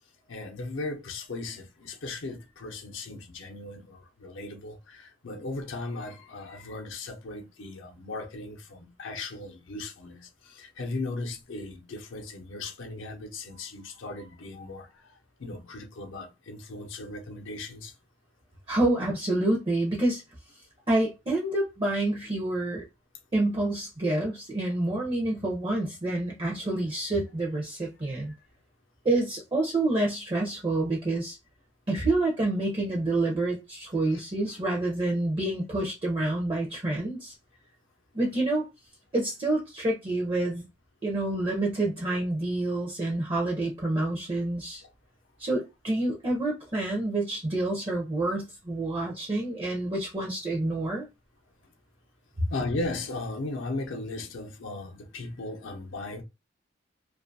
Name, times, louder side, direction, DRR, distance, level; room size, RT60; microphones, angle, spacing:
voice 1, 0.3-15.1 15.4-17.9 28.3-28.4 34.1-34.2 44.8-44.9 52.5-56.2, left 2 dB, 70° left, 0.6 m, -37 dB
voice 2, 18.7-20.2 20.9-22.8 23.3-28.3 29.0-31.4 31.9-37.3 38.1-38.7 39.1-40.6 41.0-44.8 45.4-51.1 52.4-52.5, right 2 dB, 25° right, 0.6 m, -28 dB
2.6 x 2.3 x 2.5 m
head